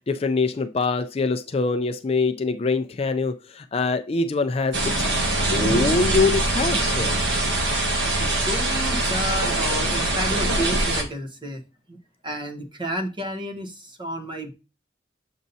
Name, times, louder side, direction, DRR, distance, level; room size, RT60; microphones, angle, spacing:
voice 1, 0.1-4.9 5.5-7.1, left 3 dB, 30° left, 0.4 m, -24 dB
sound 1, 4.7-11.0, right 2 dB, 70° right, 1.5 m, -23 dB
voice 2, 7.9-11.6 11.9-12.0 12.2-14.5, equal, 25° right, 0.9 m, -31 dB
7.2 x 5.3 x 2.7 m
head